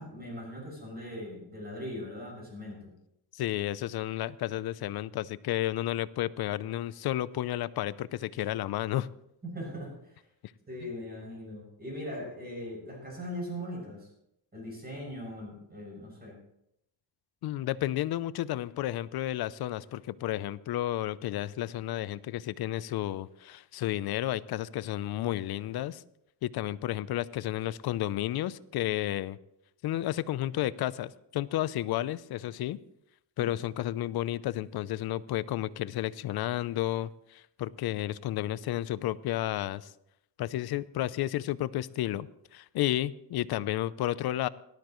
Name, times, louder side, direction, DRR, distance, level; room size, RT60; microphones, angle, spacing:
voice 1, 0.0-2.9 9.4-10.2 10.7-14.1 14.5-16.4, equal, 25° right, -1 dB, 6.7 m, -40 dB
voice 2, 3.3-9.1 17.4-26.0 26.4-29.4 29.8-32.8 33.4-39.9 40.4-42.3 42.5-44.5, left 14 dB, 65° left, 18 dB, 0.6 m, -32 dB
18.0 x 12.5 x 3.1 m, 0.79 s
cardioid pair, 130°, 41 cm